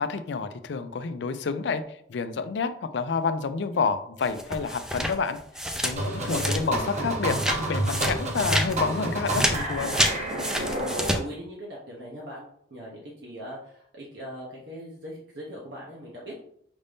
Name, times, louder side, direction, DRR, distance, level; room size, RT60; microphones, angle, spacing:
voice 1, 0.0-5.4 5.8-7.4 7.7-10.0, left 5 dB, 75° left, 10 dB, 0.4 m, -29 dB
sound 1, 4.2-6.9 7.3-11.2, equal, 5° right, 0.4 m, -28 dB
sound 2, 6.0-11.2, right 1 dB, 40° right, 0.7 m, -29 dB
voice 2, 6.2-6.6 10.7-16.4, equal, 65° right, -4 dB, 0.9 m, -40 dB
5.2 x 2.6 x 3.4 m, 0.68 s
head